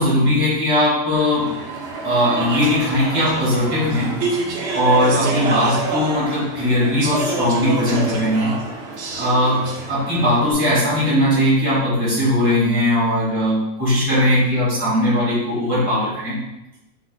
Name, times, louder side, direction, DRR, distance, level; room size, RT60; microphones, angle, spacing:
voice 1, 0.0-1.5 2.0-4.2 4.7-8.6 9.2-16.4, left 1 dB, 15° right, -7 dB, 1.5 m, -19 dB
Speech / Chatter, 1.1-10.5, right 3 dB, 60° right, 0.7 m, -27 dB
3.9 x 3.4 x 3.8 m, 0.90 s
omnidirectional pair, 1.8 m